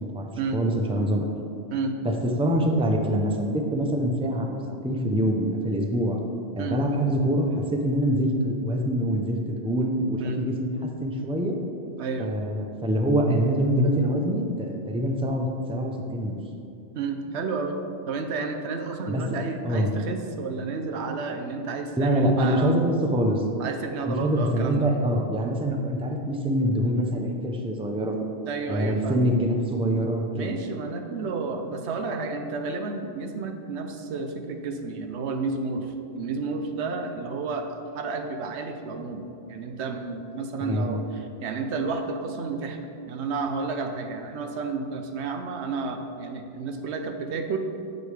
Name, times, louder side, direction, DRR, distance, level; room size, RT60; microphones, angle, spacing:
voice 1, 0.1-1.3 2.0-2.1 2.4-6.2 6.5-10.7 11.0-11.6 12.2-16.4 19.1-19.2 19.6-19.9 22.0-23.4 24.0-28.2 28.7-30.6 40.6-40.9, equal, 5° right, 2 dB, 0.4 m, -25 dB
voice 2, 12.0-12.3 17.0-17.8 18.1-22.8 23.6-24.9 28.5-29.3 30.3-41.0 41.4-42.8 43.1-47.6, right 4 dB, 90° right, 5 dB, 1.0 m, -31 dB
8.0 x 7.1 x 3.3 m, 2.6 s
omnidirectional pair, 1.1 m